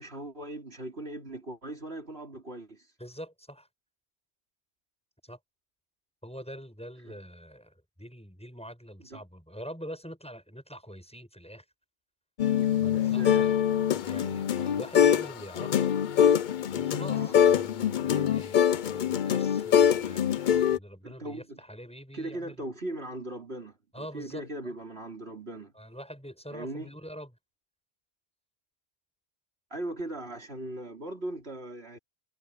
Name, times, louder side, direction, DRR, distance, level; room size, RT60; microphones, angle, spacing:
voice 1, 0.0-2.9 7.0-7.2 9.1-9.2 12.9-13.5 17.1-17.4 21.0-21.6 22.1-25.7 26.5-26.9 29.7-32.0, right 1 dB, 65° right, 4.1 m, -39 dB
voice 2, 3.0-3.7 5.2-5.4 6.2-7.7 8.0-11.7 12.8-13.6 13.9-15.9 16.7-22.7 23.9-24.7 25.7-27.3, equal, 5° left, 7.3 m, -44 dB
sound 1, 12.4-15.3 15.6-20.8, left 9 dB, 55° left, 0.6 m, -24 dB
omnidirectional pair, 1.2 m